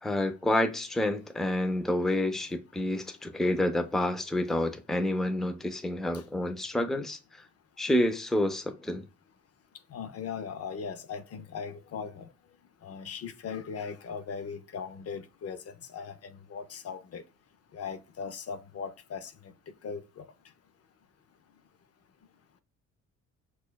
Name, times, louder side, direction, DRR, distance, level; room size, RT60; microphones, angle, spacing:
voice 1, 0.0-7.4 7.8-9.0, left 1 dB, ahead, 0.5 m, -29 dB
voice 2, 9.9-12.3 12.8-15.6 15.9-17.2 17.7-19.3 19.8-20.2, left 6 dB, 55° left, 0.6 m, -38 dB
6.0 x 2.3 x 2.2 m
cardioid pair, 90°, 30 cm